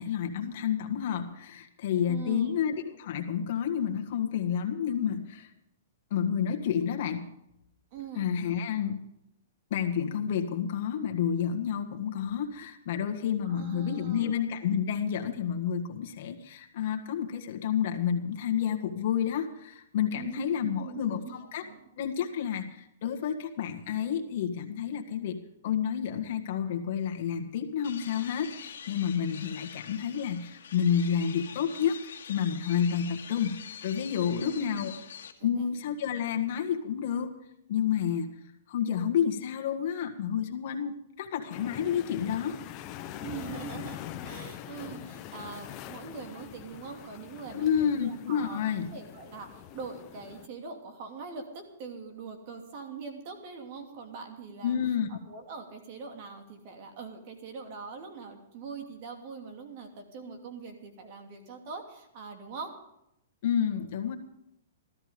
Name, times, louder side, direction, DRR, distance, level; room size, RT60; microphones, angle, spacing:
voice 1, 0.0-5.5 6.1-7.3 8.2-9.0 9.7-21.6 22.0-34.9 35.4-37.3 37.7-38.3 38.7-42.6 47.5-48.9 54.6-55.1 63.4-64.1, left 8 dB, 50° left, 3 dB, 1.7 m, -30 dB
voice 2, 2.1-2.6 7.9-8.3 13.4-14.5 20.1-21.8 34.3-34.8 35.4-35.7 43.2-48.6 48.9-54.8 55.1-62.7, right 5 dB, 40° right, 4 dB, 2.8 m, -42 dB
sound 1, 27.8-35.3, left 7 dB, 75° left, 2.0 m, -45 dB
sound 2, 41.5-50.5, left 11 dB, 30° left, 0.8 m, -43 dB
15.0 x 13.5 x 5.2 m, 0.81 s
hypercardioid pair, 155°, 0 cm